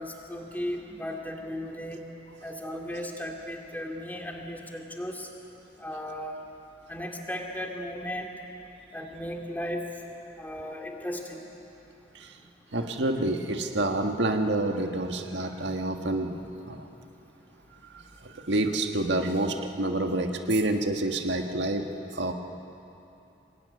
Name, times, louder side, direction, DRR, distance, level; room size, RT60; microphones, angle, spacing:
voice 1, 0.0-2.0 2.4-5.3 5.8-6.4 6.9-8.3 8.9-9.9 10.4-11.4, equal, 10° left, 1 dB, 2.5 m, -36 dB
voice 2, 12.7-16.4 16.6-16.8 17.9-21.8 22.1-22.3, right 2 dB, 80° right, 4 dB, 1.6 m, -28 dB
25.0 x 19.5 x 9.6 m, 2.9 s
head